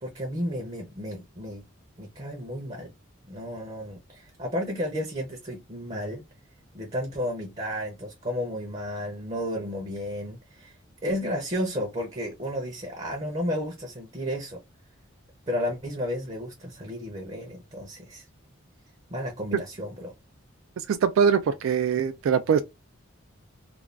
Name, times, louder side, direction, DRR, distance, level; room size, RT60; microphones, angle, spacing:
voice 1, 0.0-1.6 2.0-2.9 3.3-6.2 6.7-10.8 11.0-14.6 15.5-18.3 19.1-20.1, equal, 30° right, 0.6 m, -32 dB
voice 2, 20.8-22.6, right 7 dB, 75° right, 0.3 m, -22 dB
2.5 x 2.3 x 3.2 m
head